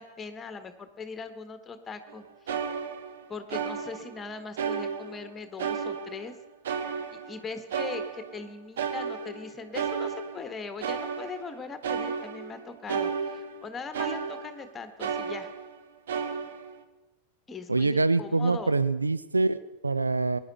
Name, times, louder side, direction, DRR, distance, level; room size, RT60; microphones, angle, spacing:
voice 1, 0.0-2.2 3.3-6.3 7.1-15.5 17.5-18.7, left 4 dB, 20° left, 9 dB, 1.5 m, -40 dB
sound 1, 2.1-2.2 2.5-4.2 4.6-5.3 5.6-8.5 8.8-14.7 15.0-15.8 16.1-16.8, right 6 dB, 60° right, 1.1 m, -33 dB
voice 2, 17.7-20.4, right 3 dB, 80° right, 14 dB, 0.5 m, -25 dB
21.0 x 11.0 x 4.2 m, 1.0 s
figure-of-eight pair, 90°, 0 cm